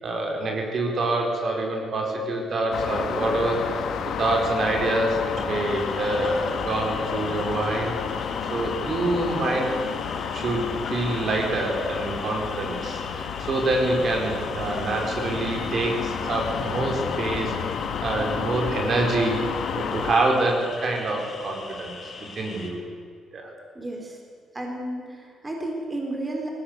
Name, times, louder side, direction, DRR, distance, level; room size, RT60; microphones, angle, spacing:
voice 1, 0.0-3.8 4.2-7.9 8.5-9.8 10.3-21.9 22.3-22.8 23.3-23.5, right 2 dB, 50° right, 1 dB, 4.6 m, -26 dB
sound 1, 2.7-20.1, left 7 dB, 70° left, 1.6 m, -31 dB
sound 2, 5.0-22.7, left 4 dB, 55° left, 6.1 m, -41 dB
voice 2, 23.7-24.2 24.5-26.5, right 1 dB, 20° right, 1 dB, 3.8 m, -32 dB
19.0 x 17.5 x 8.4 m, 2.2 s
cardioid pair, 90°, 0 cm